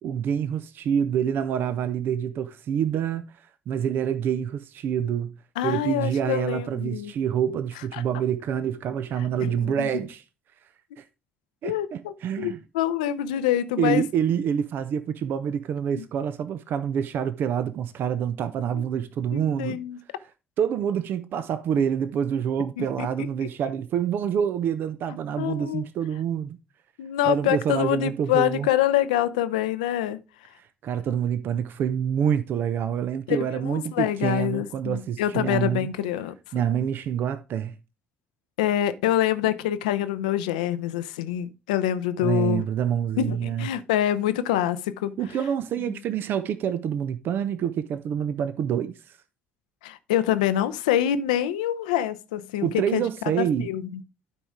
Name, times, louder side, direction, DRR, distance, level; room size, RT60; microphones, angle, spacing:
voice 1, 0.0-3.3 3.7-5.3 5.6-10.2 11.0-11.1 11.6-12.6 13.8-19.8 20.6-26.6 27.2-28.7 30.8-35.9 36.5-37.7 42.2-43.7 45.2-49.0 52.6-53.7, right 8 dB, 55° right, 0.6 m, -27 dB
voice 2, 5.6-7.1 7.9-8.0 9.4-10.0 11.6-14.0 15.9-16.0 18.7-18.9 19.3-20.0 21.7-21.8 22.8-23.3 25.4-25.8 27.0-30.2 33.3-36.3 38.6-42.6 43.2-45.2 45.9-46.0 49.8-53.1 53.4-54.0, left 12 dB, 75° left, 0.6 m, -26 dB
12.0 x 5.0 x 3.6 m
figure-of-eight pair, 40°, 4 cm